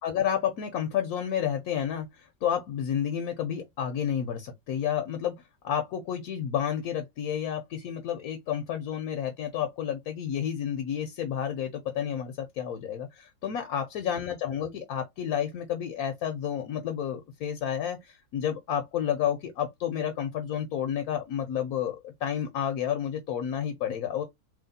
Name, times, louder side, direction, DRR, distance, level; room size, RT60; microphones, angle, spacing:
voice 1, 0.0-5.3 5.6-24.2, left 9 dB, 70° left, 1.1 m, -30 dB
3.0 x 2.8 x 4.0 m
omnidirectional pair, 1.7 m